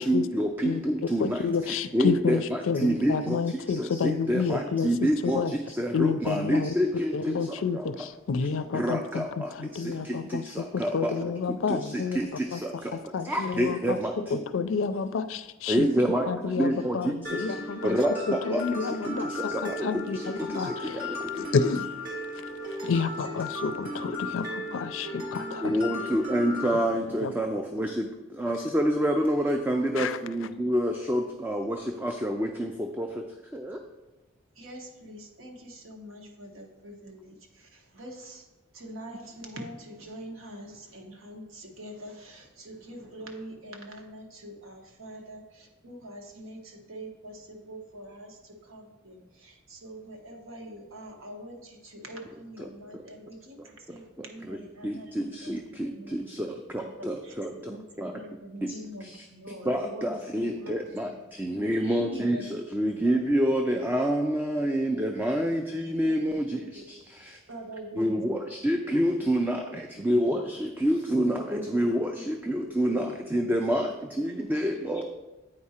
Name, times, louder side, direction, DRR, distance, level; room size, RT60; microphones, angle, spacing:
voice 1, 0.0-8.1 8.4-14.4 15.7-17.6 17.8-21.5 25.6-33.2 33.5-33.8 52.3-53.1 53.6-58.2 58.6-67.4 67.9-75.0, equal, 10° right, 3 dB, 0.3 m, -28 dB
voice 2, 1.2-4.9 5.2-5.5 5.9-6.7 7.1-12.3 12.5-15.9 16.3-18.0 18.3-21.0 21.4-21.9 22.8-25.7 27.2-27.3 30.0-30.2, left 5 dB, 80° left, 13 dB, 0.4 m, -30 dB
Mallet percussion, 17.2-26.8, left 2 dB, 45° right, 1.9 m, -36 dB
voice 3, 22.4-22.9 24.4-24.7 25.1-25.8 34.6-37.3 37.9-38.4 38.7-48.4 48.7-55.6 55.9-56.2 56.8-56.9 57.5-57.8 58.1-59.0 59.3-60.1 60.3-60.7 61.4-61.6 62.1-62.5 63.8-63.9 64.9-65.0 66.0-66.1 66.8-66.9 67.5-68.4 72.8-73.0 74.5-74.6, right 1 dB, 90° right, 2 dB, 1.2 m, -44 dB
8.7 x 4.8 x 4.3 m, 1.1 s
head